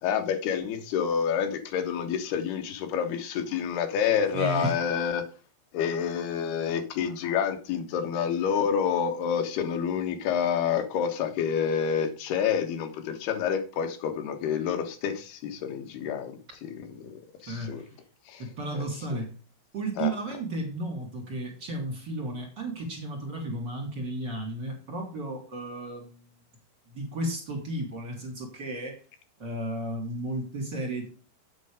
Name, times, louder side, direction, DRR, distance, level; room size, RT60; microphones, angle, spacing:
voice 1, 0.0-5.3 5.7-17.8 18.3-18.4 20.0-20.1, left 7 dB, 90° left, 7 dB, 3.5 m, -28 dB
voice 2, 4.3-4.8 17.4-17.9 18.4-19.3 19.7-26.3 26.9-29.0 29.4-31.1, right 2 dB, 30° right, 1 dB, 3.6 m, -33 dB
9.2 x 8.3 x 5.1 m, 0.36 s
omnidirectional pair, 4.4 m